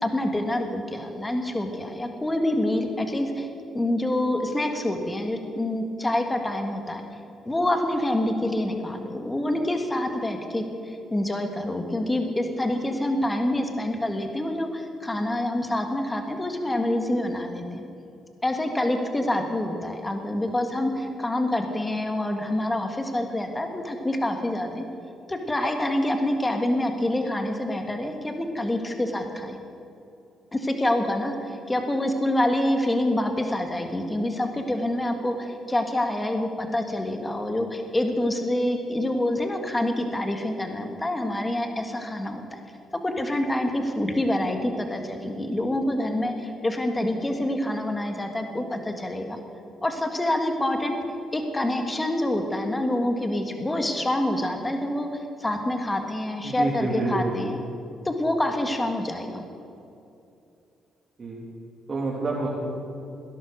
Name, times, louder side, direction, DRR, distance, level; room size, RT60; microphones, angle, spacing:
voice 1, 0.0-3.5 3.7-7.0 7.4-17.8 18.4-24.8 25.3-29.6 30.5-42.6 43.0-49.4 49.8-51.0 51.3-55.1 55.4-57.6 58.0-59.4, left 1 dB, 15° left, 5 dB, 1.7 m, -26 dB
voice 2, 56.4-57.3 61.2-61.4 61.9-62.5, right 3 dB, 40° right, -5 dB, 2.8 m, -27 dB
17.5 x 11.0 x 6.5 m, 2.7 s
cardioid pair, 90°, 0 cm